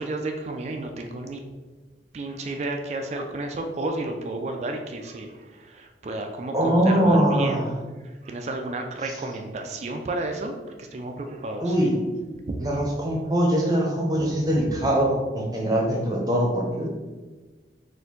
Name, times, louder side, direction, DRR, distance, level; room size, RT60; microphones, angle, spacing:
voice 1, 0.0-1.4 2.1-7.7 8.2-10.5 10.8-11.9 12.5-12.8, right 2 dB, 40° right, 4 dB, 0.3 m, -32 dB
voice 2, 6.5-7.7 11.6-11.9 12.6-16.9, right 1 dB, 20° right, -2 dB, 0.7 m, -22 dB
4.2 x 2.6 x 3.8 m, 1.3 s
head